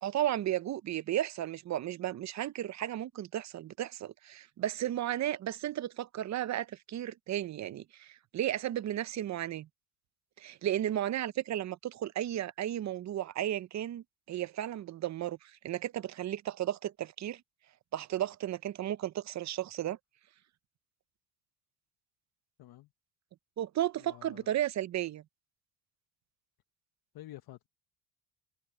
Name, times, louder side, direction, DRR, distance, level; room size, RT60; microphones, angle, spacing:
voice 1, 0.0-9.7 10.4-17.4 17.9-20.0 23.6-25.2, right 12 dB, 40° right, 0.7 m, -34 dB
voice 2, 22.6-22.9 24.0-24.5 27.1-27.7, left 15 dB, 55° left, 1.1 m, -49 dB
open air
cardioid pair, 110°, 44 cm